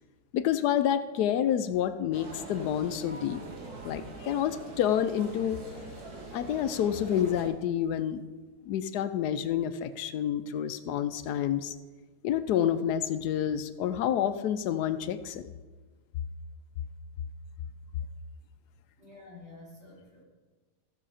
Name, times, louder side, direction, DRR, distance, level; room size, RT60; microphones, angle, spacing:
voice 1, 0.3-3.4 3.8-5.6 6.3-8.2 8.7-11.7 12.2-15.5, left 10 dB, 80° left, 11 dB, 1.2 m, -28 dB
sound 1, 2.1-7.5, right 2 dB, 70° right, 2.1 m, -44 dB
voice 2, 19.0-20.3, left 2 dB, 40° right, -8 dB, 4.8 m, -50 dB
15.5 x 6.5 x 4.9 m, 1.3 s
omnidirectional pair, 1.7 m